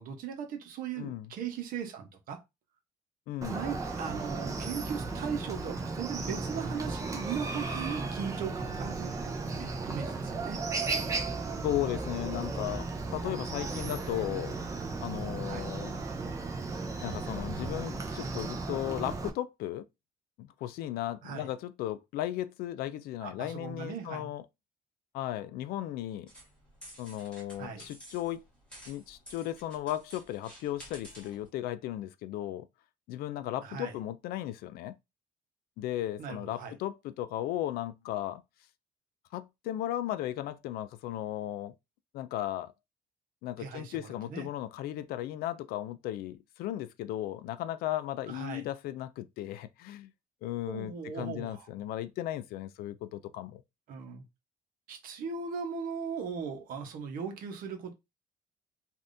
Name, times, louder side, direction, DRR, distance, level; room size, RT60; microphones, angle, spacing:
voice 1, 0.0-2.4 3.5-10.6 15.4-15.7 21.2-21.5 23.2-24.3 27.6-27.8 33.6-33.9 36.2-36.7 43.6-44.5 48.3-48.7 50.7-51.7 53.9-54.2 54.9-57.9, right 6 dB, 65° right, 1.0 m, -38 dB
voice 2, 1.0-1.3 3.3-3.6 11.6-14.6 15.0-16.0 17.0-19.8 20.4-24.4 25.1-26.3 27.0-28.4 28.9-32.7 33.1-35.0 35.8-38.4 39.3-41.7 42.1-42.7 43.4-50.1 50.4-53.6, left 13 dB, 80° left, 0.4 m, -36 dB
Chicken rooster, 3.4-19.3, right 3 dB, 20° right, 0.6 m, -35 dB
Industrial Wire, 26.3-31.5, right 1 dB, 5° left, 1.6 m, -52 dB
3.4 x 2.5 x 2.6 m
cardioid pair, 140°, 15 cm